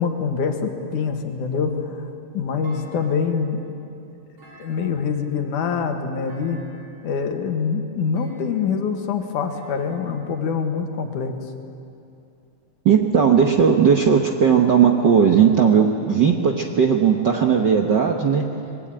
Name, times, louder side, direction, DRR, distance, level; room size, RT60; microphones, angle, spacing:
voice 1, 0.0-2.0 2.3-3.6 4.6-6.6 7.0-11.4, left 6 dB, 80° left, 5 dB, 3.1 m, -25 dB
Thump thud, 2.6-3.6 4.4-5.3 6.3-7.0 8.1-8.8 9.5-10.5, right 1 dB, 40° right, 6.1 m, -48 dB
voice 2, 12.8-18.5, right 7 dB, 60° right, 2 dB, 1.2 m, -17 dB
25.0 x 21.0 x 8.9 m, 2.7 s
omnidirectional pair, 3.5 m